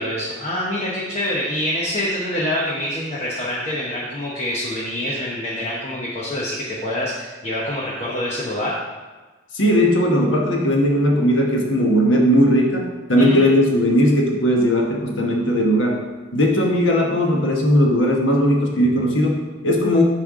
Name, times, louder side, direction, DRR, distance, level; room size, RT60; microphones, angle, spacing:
voice 1, 0.0-8.7 13.2-13.4, left 1 dB, 35° left, -6 dB, 1.0 m, -26 dB
voice 2, 9.5-16.0 16.3-20.0, equal, 85° left, 0 dB, 1.2 m, -18 dB
10.0 x 3.4 x 3.7 m, 1.3 s
head